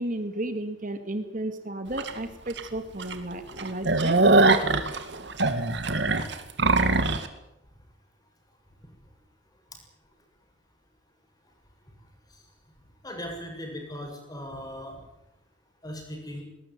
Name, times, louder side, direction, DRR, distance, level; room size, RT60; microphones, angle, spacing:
voice 1, 0.0-4.2, right 1 dB, 45° right, 8 dB, 2.1 m, -33 dB
sound 1, 2.0-2.1 2.6-2.7 3.0-3.1 3.5-7.3, right 3 dB, 65° right, 2.2 m, -22 dB
voice 2, 13.0-15.0 15.8-16.4, equal, 20° left, 2 dB, 7.1 m, -38 dB
20.5 x 19.5 x 9.5 m, 0.84 s
head